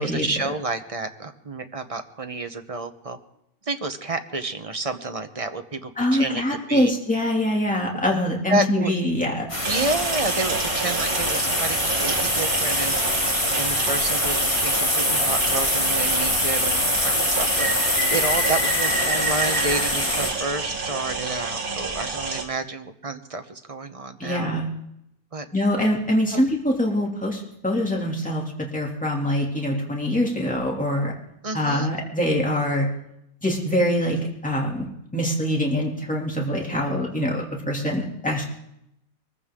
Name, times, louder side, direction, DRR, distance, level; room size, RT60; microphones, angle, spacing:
voice 1, 0.0-3.2 3.7-6.9 8.5-8.9 9.6-13.1 13.5-24.5 25.3-25.4 26.3-26.4 31.4-32.0, right 3 dB, 30° right, 8 dB, 0.8 m, -30 dB
voice 2, 6.0-9.5 24.2-24.7 25.5-28.4 28.7-31.1 31.5-32.9 33.4-34.9 35.1-38.5, left 1 dB, 5° left, -2 dB, 2.6 m, -24 dB
sound 1, 9.5-20.3, left 1 dB, 20° left, 3.5 m, -24 dB
sound 2, 9.6-22.5, right 4 dB, 70° right, 2.5 m, -30 dB
22.5 x 15.0 x 3.7 m, 0.79 s
omnidirectional pair, 1.5 m